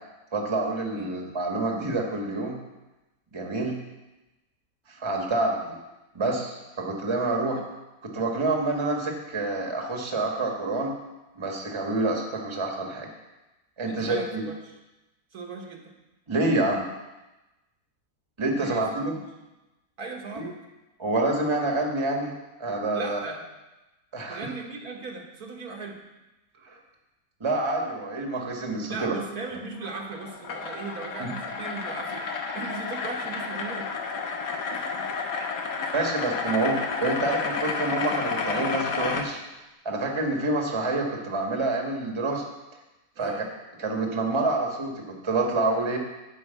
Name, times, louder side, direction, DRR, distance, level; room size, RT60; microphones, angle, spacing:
voice 1, 0.3-2.6 3.3-3.8 4.9-5.7 6.1-7.6 8.0-11.0 11.4-13.1 13.8-14.4 16.3-16.9 18.4-19.1 20.3-20.5 21.0-22.3 22.6-23.2 24.1-24.5 26.6-26.8 27.4-29.1 31.2-31.3 35.3-35.5 35.9-39.4 39.8-42.4 43.2-43.3 43.8-46.0, right 2 dB, 20° right, 1 dB, 1.3 m, -27 dB
voice 2, 13.8-14.7 15.3-15.9 18.5-19.2 20.0-20.5 22.9-23.4 24.3-26.0 28.9-32.3 32.5-33.9 34.7-35.1 43.2-43.5, right 4 dB, 65° right, 0 dB, 1.8 m, -38 dB
sound 1, 29.8-39.2, left 5 dB, 90° left, 1.7 m, -31 dB
11.0 x 4.8 x 8.1 m, 1.0 s
omnidirectional pair, 1.8 m